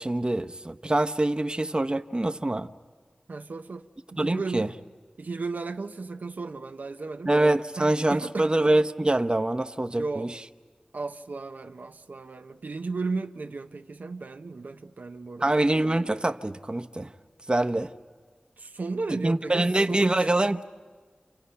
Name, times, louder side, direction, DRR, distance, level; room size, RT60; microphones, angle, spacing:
voice 1, 0.0-2.7 4.2-4.7 7.3-10.4 15.4-17.1 17.5-17.9 19.2-20.6, right 1 dB, 30° right, 0.9 m, -25 dB
voice 2, 3.3-4.7 5.2-7.3 7.8-8.5 10.0-10.3 10.9-15.5 18.6-20.3, right 3 dB, 85° right, 0.7 m, -35 dB
29.0 x 28.0 x 5.7 m
cardioid pair, 40°, 3 cm